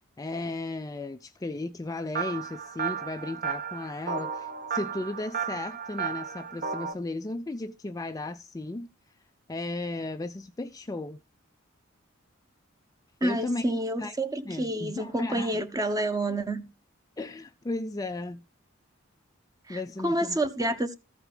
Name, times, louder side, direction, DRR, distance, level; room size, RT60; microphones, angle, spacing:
voice 1, 0.2-8.9 9.5-11.2 13.2-13.6 14.0-14.2 14.4-15.6 17.2-18.4 19.7-20.4, left 2 dB, 15° left, 0.4 m, -35 dB
sound 1, 2.2-6.9, right 6 dB, 45° right, 1.0 m, -34 dB
voice 2, 13.2-16.6 19.7-20.9, right 1 dB, 15° right, 0.9 m, -29 dB
14.5 x 4.9 x 4.9 m
head